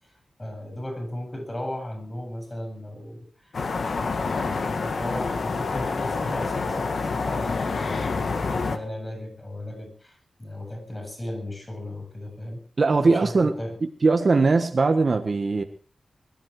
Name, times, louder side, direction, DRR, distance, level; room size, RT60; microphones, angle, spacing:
voice 1, 0.0-3.6 3.9-12.6 13.0-13.8, left 1 dB, 20° left, 7.3 m, -36 dB
sound 1, 3.5-8.8, left 4 dB, 65° left, 2.0 m, -27 dB
voice 2, 12.8-13.5 14.0-15.6, right 3 dB, 45° right, 1.4 m, -20 dB
22.0 x 12.5 x 4.8 m
wide cardioid pair, 105°, 0 cm